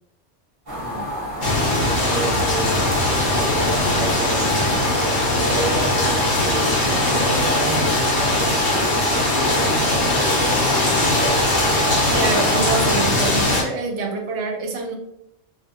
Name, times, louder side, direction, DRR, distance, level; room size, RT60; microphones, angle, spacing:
sound 1, 0.7-13.1, equal, 35° right, 0.7 m, -27 dB
voice 1, 0.8-2.7 3.4-8.5 9.3-11.5, right 1 dB, 40° left, -7 dB, 1.2 m, -30 dB
sound 2, 1.4-13.6, left 2 dB, 70° left, 1.1 m, -20 dB
voice 2, 12.1-14.9, right 4 dB, 70° right, 2 dB, 0.8 m, -25 dB
2.6 x 2.5 x 2.4 m, 0.81 s
omnidirectional pair, 1.2 m